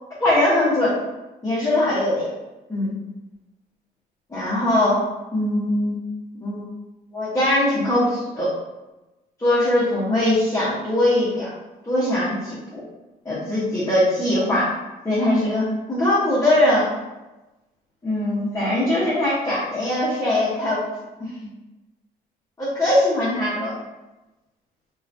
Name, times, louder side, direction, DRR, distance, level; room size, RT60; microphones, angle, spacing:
voice 1, 0.2-0.9 1.4-2.3 2.7-2.9 4.3-6.0 6.4-6.7 7.1-8.5 9.4-11.5 11.8-12.8 13.2-14.7 15.0-16.9 18.0-20.8 21.2-21.3 22.6-23.7, left 1 dB, 15° left, -10 dB, 1.1 m, -21 dB
3.0 x 2.9 x 2.6 m, 1.1 s
cardioid pair, 110°, 17 cm